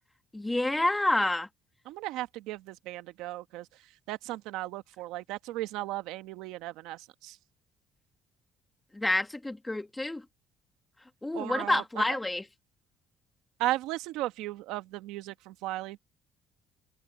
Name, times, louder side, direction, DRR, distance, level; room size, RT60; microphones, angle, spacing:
voice 1, 0.3-1.5 8.9-10.2 11.2-12.4, left 2 dB, 10° left, 1.9 m, -28 dB
voice 2, 1.8-3.7 4.1-7.4 11.3-12.0 13.6-16.0, right 16 dB, 90° right, 1.2 m, -36 dB
open air
cardioid pair, 105°, 0 cm